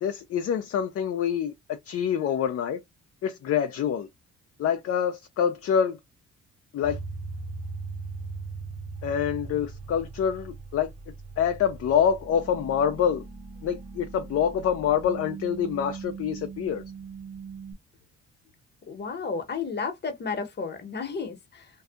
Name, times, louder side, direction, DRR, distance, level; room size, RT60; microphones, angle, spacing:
voice 1, 0.0-2.8 3.2-4.1 4.6-6.0 6.7-7.0 9.0-10.9 11.4-13.2 13.6-16.8, left 8 dB, 50° left, 0.5 m, -26 dB
sound 1, 6.8-17.7, right 4 dB, 20° right, 0.9 m, -39 dB
voice 2, 18.9-21.7, left 5 dB, 35° left, 0.9 m, -32 dB
2.6 x 2.3 x 2.3 m
cardioid pair, 90°, 30 cm